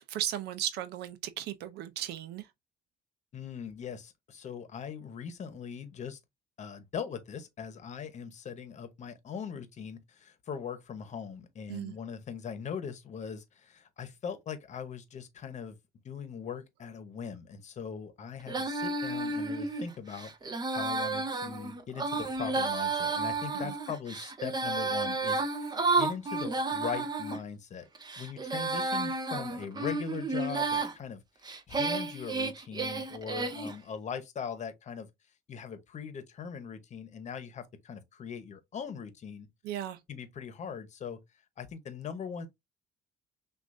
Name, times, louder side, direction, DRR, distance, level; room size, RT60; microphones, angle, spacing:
voice 1, 0.0-2.5 11.7-12.0 23.5-23.7 39.6-40.0, right 11 dB, 80° right, 0.6 m, -36 dB
voice 2, 3.3-6.2 6.6-15.8 16.0-20.3 20.7-27.9 28.2-31.2 31.7-35.1 35.5-39.5 40.1-41.2 41.6-42.5, left 7 dB, 45° left, 1.0 m, -40 dB
Female singing, 18.5-27.4 28.0-30.9 31.5-33.8, right 3 dB, 25° right, 0.8 m, -32 dB
6.1 x 2.6 x 2.6 m
cardioid pair, 110°, 17 cm